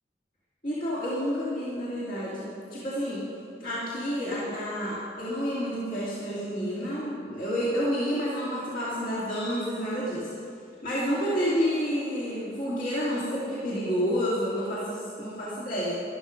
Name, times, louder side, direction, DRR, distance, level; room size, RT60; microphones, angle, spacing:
voice 1, 0.6-3.2 3.6-10.3 10.8-15.9, equal, 50° left, -8 dB, 2.3 m, -29 dB
12.5 x 12.0 x 5.1 m, 2.6 s
head